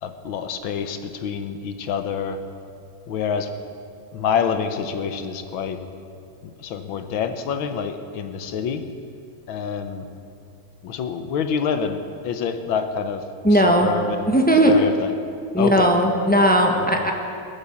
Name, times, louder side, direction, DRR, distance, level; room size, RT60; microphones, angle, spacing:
voice 1, 0.0-2.4 3.1-3.5 4.1-5.8 6.6-8.8 9.5-10.0 10.8-15.1 15.6-15.9 16.8-17.1, left 7 dB, 75° left, 8 dB, 1.7 m, -27 dB
voice 2, 13.4-13.9 14.3-14.7 15.5-17.1, right 1 dB, 5° left, 1 dB, 0.9 m, -17 dB
20.0 x 8.7 x 7.2 m, 2.5 s
omnidirectional pair, 2.3 m